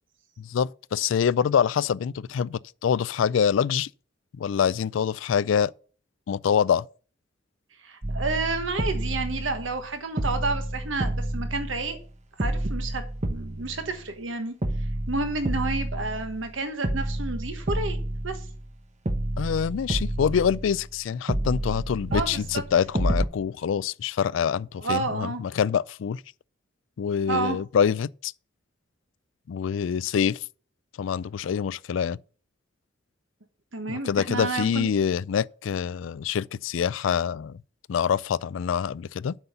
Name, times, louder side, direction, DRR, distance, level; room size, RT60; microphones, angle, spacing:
voice 1, 0.4-3.9 4.4-5.7 6.3-6.8 19.4-26.2 27.0-28.3 29.5-30.4 31.0-32.2 33.9-37.5 37.9-39.4, left 7 dB, 80° left, 0.4 m, -25 dB
voice 2, 7.8-12.0 12.4-13.0 13.3-14.5 15.1-18.0 18.2-18.4 22.1-22.6 24.8-25.4 27.3-27.6 33.7-34.9, right 3 dB, 85° right, 1.4 m, -30 dB
sound 1, 8.0-9.9 10.2-12.1 12.4-14.3 14.6-16.5 16.8-18.7 19.1-21.0 21.3-23.3, right 1 dB, 40° right, 1.2 m, -30 dB
7.9 x 5.5 x 6.8 m
head